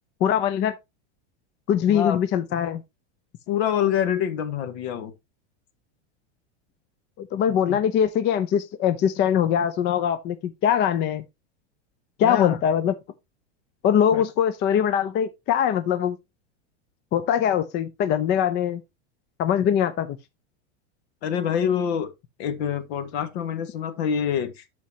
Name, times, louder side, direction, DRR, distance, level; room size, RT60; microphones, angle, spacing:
voice 1, 0.2-0.7 1.7-2.8 7.2-11.2 12.2-12.9 13.8-16.2 17.1-18.8 19.4-20.2, left 9 dB, 30° left, 0.6 m, -22 dB
voice 2, 1.9-2.2 3.5-5.1 7.7-7.8 12.2-12.6 14.1-14.2 21.2-22.1 22.4-24.6, left 9 dB, 65° left, 1.8 m, -26 dB
12.5 x 4.5 x 2.8 m
supercardioid pair, 145°, 35 cm